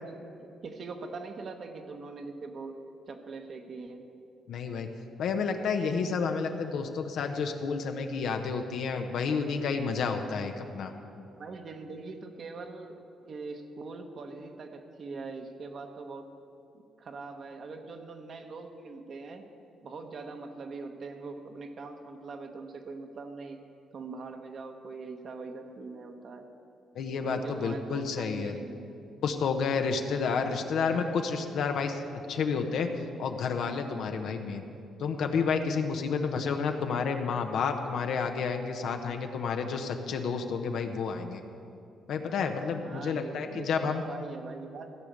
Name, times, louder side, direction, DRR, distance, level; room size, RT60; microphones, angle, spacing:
voice 1, 0.0-4.0 11.4-16.3 16.7-19.4 19.8-23.6 23.9-26.5 27.2-28.9 36.2-36.3 42.8-44.9, right 3 dB, 55° right, 5 dB, 1.1 m, -42 dB
voice 2, 4.5-4.9 5.2-10.9 26.9-28.5 29.2-32.0 32.3-32.9 33.2-34.6 35.0-41.4 42.1-44.0, left 5 dB, 75° left, 5 dB, 0.8 m, -30 dB
15.5 x 5.1 x 8.2 m, 2.6 s
cardioid pair, 90°, 0 cm